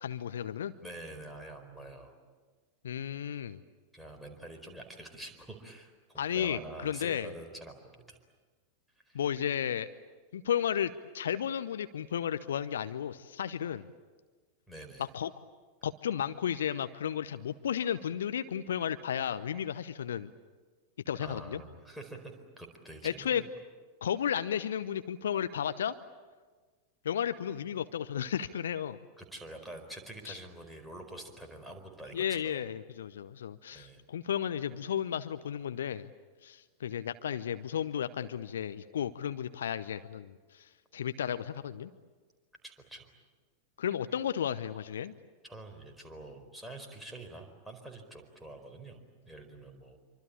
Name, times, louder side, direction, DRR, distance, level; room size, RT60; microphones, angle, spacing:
voice 1, 0.0-0.7 2.8-3.6 6.2-7.3 9.1-9.9 10.3-13.9 15.0-15.3 15.8-20.3 21.1-21.6 23.0-23.4 24.0-25.9 27.0-29.0 30.3-30.4 32.1-36.1 36.4-41.9 43.8-45.1, left 9 dB, 65° left, 13 dB, 0.8 m, -33 dB
voice 2, 0.8-2.1 3.9-8.2 9.1-9.2 14.7-15.1 21.2-23.5 29.2-32.7 33.7-34.0 42.6-43.1 45.4-49.0 49.3-50.0, right 1 dB, ahead, 2 dB, 4.5 m, -46 dB
27.0 x 24.5 x 8.7 m, 1.4 s
figure-of-eight pair, 90°, 0 cm